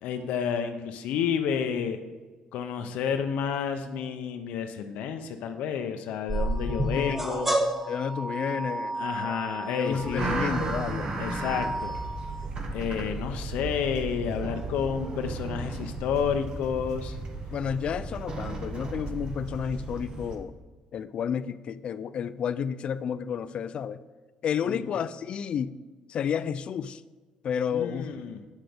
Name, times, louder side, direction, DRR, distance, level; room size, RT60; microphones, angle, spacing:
voice 1, 0.0-2.0 2.5-7.5 9.0-10.4 11.2-12.0 12.7-17.2 24.7-24.9 27.7-28.4, left 7 dB, 85° left, 6 dB, 0.6 m, -30 dB
sound 1, 6.3-12.5, right 1 dB, 10° right, 0.8 m, -31 dB
voice 2, 7.9-8.9 9.2-9.4 9.8-11.1 17.5-20.5 20.9-24.0 24.4-25.7 26.1-27.0 27.4-28.1, left 7 dB, 50° left, 15 dB, 0.4 m, -31 dB
sound 2, 9.9-20.4, right 2 dB, 40° right, 1.3 m, -34 dB
8.2 x 6.0 x 5.0 m, 1.3 s
cardioid pair, 130°, 2 cm